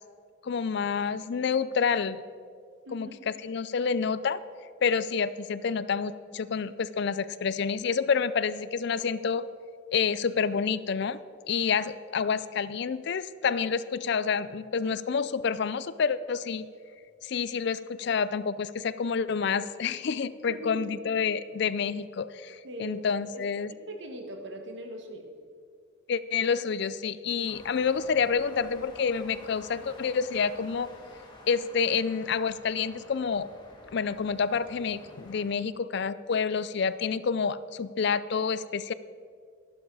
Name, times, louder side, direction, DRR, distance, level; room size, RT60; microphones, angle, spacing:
voice 1, 0.4-2.2 2.9-4.4 4.8-9.5 9.9-11.2 11.5-16.6 17.2-23.7 26.1-30.9 31.5-33.5 33.9-38.9, left 6 dB, 55° left, 16 dB, 0.4 m, -28 dB
voice 2, 2.8-3.2 20.5-20.9 22.6-23.1 23.3-25.3, equal, 55° right, 4 dB, 1.5 m, -41 dB
sound 1, 27.5-35.5, left 1 dB, 20° left, 1.8 m, -51 dB
13.0 x 12.0 x 4.8 m, 2.2 s
head